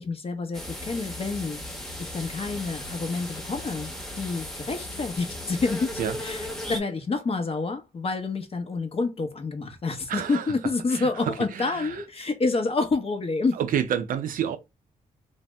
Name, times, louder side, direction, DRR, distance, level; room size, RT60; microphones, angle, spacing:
voice 1, 0.0-1.6 2.0-13.6, left 3 dB, 45° left, 0.8 m, -28 dB
sound 1, 0.5-6.8, left 1 dB, 5° left, 0.9 m, -36 dB
voice 2, 10.1-10.5 10.9-12.0 13.5-14.6, right 9 dB, 75° right, 0.5 m, -29 dB
2.6 x 2.0 x 3.3 m
cardioid pair, 80°, 14 cm